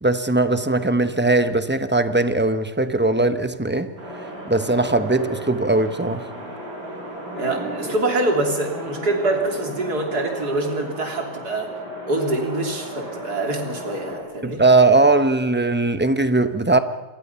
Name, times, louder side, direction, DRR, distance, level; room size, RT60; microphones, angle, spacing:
voice 1, 0.0-3.9 4.5-6.3 14.4-16.8, right 2 dB, 10° right, 0.7 m, -19 dB
sound 1, 4.0-14.2, equal, 85° right, 6.9 m, -34 dB
voice 2, 7.3-11.7 12.1-14.6, right 2 dB, 65° right, 3.6 m, -25 dB
27.5 x 22.5 x 5.7 m
omnidirectional pair, 1.8 m